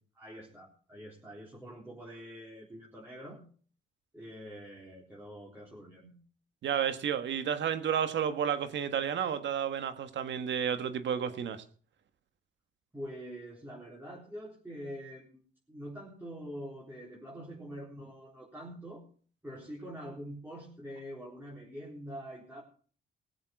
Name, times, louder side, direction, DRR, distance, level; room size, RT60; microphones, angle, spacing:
voice 1, 0.2-3.4 4.1-6.1 12.9-15.4 15.7-19.0 19.4-22.6, equal, 10° right, 3.9 m, -45 dB
voice 2, 6.6-11.6, right 8 dB, 65° right, 1.6 m, -31 dB
19.0 x 7.5 x 5.9 m
cardioid pair, 90°, 20 cm